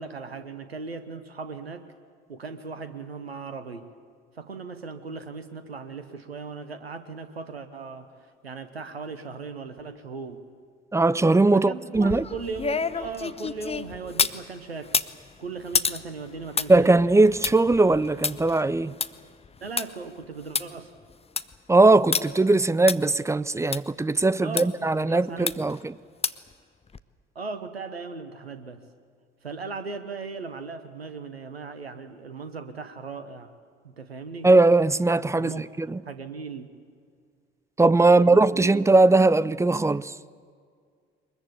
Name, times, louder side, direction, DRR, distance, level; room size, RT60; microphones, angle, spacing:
voice 1, 0.0-1.9 2.3-3.9 4.4-10.5 11.5-14.9 15.4-16.9 19.6-20.9 24.4-25.5 27.3-28.9 29.4-33.5 33.8-34.5 35.3-35.6 36.0-36.7 38.1-39.0, right 4 dB, 85° right, 1.0 m, -38 dB
voice 2, 10.9-12.2 16.7-18.9 21.7-25.9 34.4-36.0 37.8-40.1, right 2 dB, 10° right, 0.5 m, -20 dB
sound 1, 11.9-14.4 14.8-19.9 20.2-20.3 20.5-20.6 21.1-21.5 22.1-22.2 22.9-23.0 23.7-23.8 24.6-24.7 25.5-25.8 26.2-26.5 26.9-27.0, left 5 dB, 20° left, 0.8 m, -29 dB
23.0 x 21.0 x 8.4 m
figure-of-eight pair, 50°, 30 cm